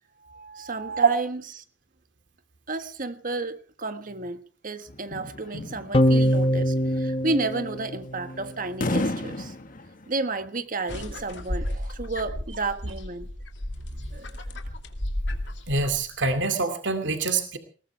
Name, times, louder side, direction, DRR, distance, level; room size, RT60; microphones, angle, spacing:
voice 1, 0.2-1.6 2.7-9.5 10.1-13.3 14.1-14.4, right 3 dB, 50° right, 1.5 m, -32 dB
voice 2, 0.8-1.1 15.7-17.6, right 4 dB, 85° right, 2.4 m, -25 dB
sound 1, 4.9-10.1, left 2 dB, 50° left, 1.5 m, -32 dB
sound 2, 5.9-8.5, equal, 30° left, 0.9 m, -23 dB
sound 3, 10.9-16.5, left 1 dB, 80° left, 2.5 m, -34 dB
20.5 x 19.5 x 3.4 m
head